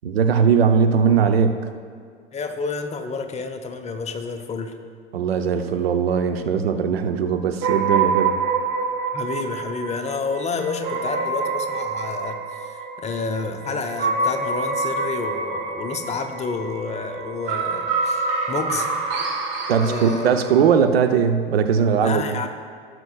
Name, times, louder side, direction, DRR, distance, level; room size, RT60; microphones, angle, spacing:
voice 1, 0.0-1.6 5.1-8.4 19.7-22.4, right 6 dB, 75° right, 7 dB, 0.7 m, -19 dB
voice 2, 2.3-4.7 9.1-18.9 19.8-20.3 22.0-22.5, left 4 dB, 20° left, 6 dB, 0.8 m, -29 dB
sound 1, 7.6-20.7, right 4 dB, 40° right, 1.4 m, -26 dB
17.5 x 6.1 x 2.4 m, 2.1 s
figure-of-eight pair, 85°, 30 cm